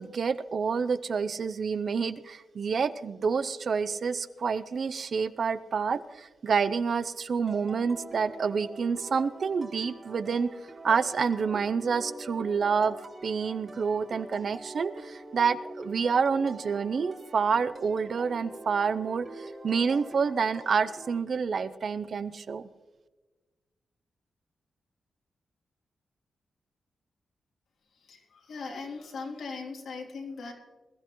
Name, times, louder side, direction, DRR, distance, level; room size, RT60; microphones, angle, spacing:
voice 1, 0.0-10.5 10.8-13.0 13.2-22.7, right 5 dB, 50° right, 14 dB, 0.5 m, -28 dB
sound 1, 7.5-21.2, right 2 dB, 30° right, 1.9 m, -44 dB
voice 2, 27.9-30.5, left 4 dB, 75° left, -1 dB, 3.0 m, -39 dB
21.5 x 13.5 x 3.0 m, 1.3 s
wide cardioid pair, 135°, 0 cm